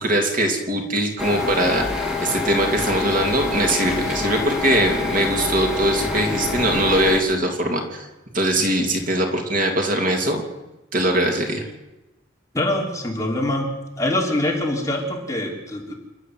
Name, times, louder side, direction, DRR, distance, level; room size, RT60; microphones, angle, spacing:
voice 1, 0.0-1.9 2.2-8.1 8.3-10.4 10.9-11.6, right 1 dB, 40° right, 2 dB, 3.1 m, -21 dB
sound 1, 1.2-7.2, left 4 dB, 5° right, 3.7 m, -26 dB
voice 2, 12.5-13.7 14.0-15.9, left 1 dB, 15° left, -1 dB, 3.3 m, -24 dB
28.5 x 12.0 x 8.0 m, 1.0 s
head